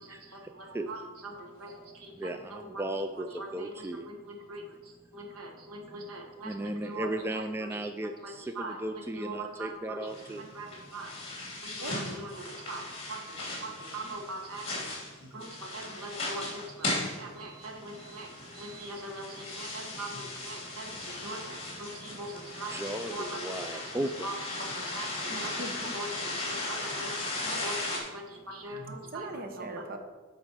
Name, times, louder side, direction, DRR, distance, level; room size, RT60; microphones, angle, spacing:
voice 1, 0.3-1.0 1.3-1.7 2.0-2.1 2.5-2.6 3.4-3.7 4.0-4.6 5.1-7.1 8.6-8.7 9.1-10.0 10.5-11.1 11.6-12.8 13.1-14.7 15.2-16.9 17.2-18.3 18.6-22.7 23.1-23.4 23.7-23.8 24.2-29.2, right 2 dB, 80° right, 2 dB, 1.5 m, -41 dB
voice 2, 2.2-3.3 3.5-4.1 6.4-8.3 8.8-10.4 22.7-24.3, right 1 dB, 10° right, 7 dB, 0.3 m, -35 dB
sound 1, 10.1-28.0, left 2 dB, 30° left, 3.1 m, -37 dB
voice 3, 11.8-12.6 13.5-14.1 16.2-16.5 16.8-17.1 17.4-18.3 18.5-18.9 21.7-21.8 22.7-22.8 25.3-25.8 27.4-27.5 27.7-27.8 29.1-30.0, right 2 dB, 45° right, 5 dB, 0.9 m, -45 dB
8.8 x 4.9 x 6.4 m, 1.4 s
head